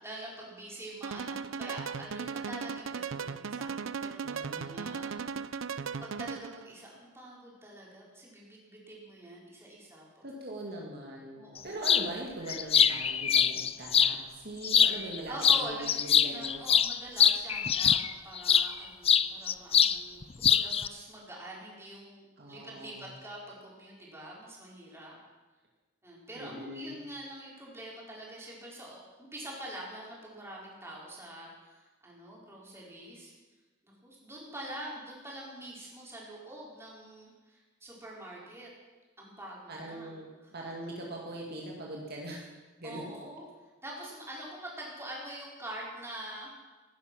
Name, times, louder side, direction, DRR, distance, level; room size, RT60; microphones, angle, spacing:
voice 1, 0.0-5.5 6.0-10.2 11.3-11.8 15.3-15.9 16.3-25.2 26.0-33.3 33.8-38.7 39.2-40.1 40.4-40.5 42.8-43.5 43.8-46.7, right 1 dB, 15° right, -4 dB, 4.4 m, -45 dB
sound 1, 1.0-6.7, right 5 dB, 80° right, 0.5 m, -37 dB
voice 2, 4.2-4.9 10.2-16.6 22.4-23.2 26.4-27.0 39.7-40.3 40.5-42.5 42.8-43.0, right 1 dB, 55° right, -2 dB, 2.3 m, -41 dB
sound 2, 11.8-12.1 12.5-14.1 14.6-15.2 15.4-18.7 19.0-20.0 20.2-20.9, left 8 dB, 30° left, 0.5 m, -24 dB
16.0 x 11.0 x 6.2 m, 1.2 s
head